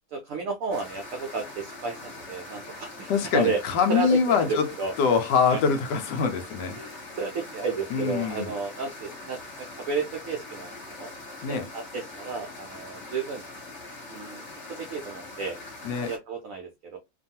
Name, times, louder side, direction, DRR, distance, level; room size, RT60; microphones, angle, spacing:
voice 1, 0.1-3.6 3.9-4.9 5.5-5.6 6.7-11.1 11.5-13.4 14.1-14.4 14.7-15.6 15.9-17.0, right 4 dB, 80° right, 0.7 m, -32 dB
sound 1, 0.7-16.2, left 2 dB, 45° left, 1.3 m, -42 dB
voice 2, 3.1-4.7 5.0-6.8 7.9-8.5 11.4-11.7 15.8-16.1, left 6 dB, 75° left, 1.2 m, -24 dB
2.9 x 2.2 x 2.7 m
omnidirectional pair, 1.9 m